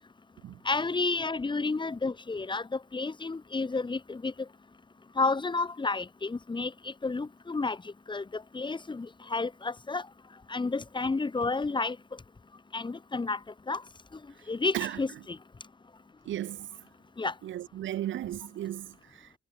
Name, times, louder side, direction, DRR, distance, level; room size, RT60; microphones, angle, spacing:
voice 1, 0.7-4.3 5.2-7.8 8.1-10.0 10.5-12.0 12.7-13.4 13.7-13.8 14.5-15.4 17.2-17.3, left 3 dB, 25° left, 2.2 m, -31 dB
voice 2, 16.2-16.7 17.4-19.4, right 12 dB, 75° right, 1.5 m, -35 dB
cardioid pair, 90°, 20 cm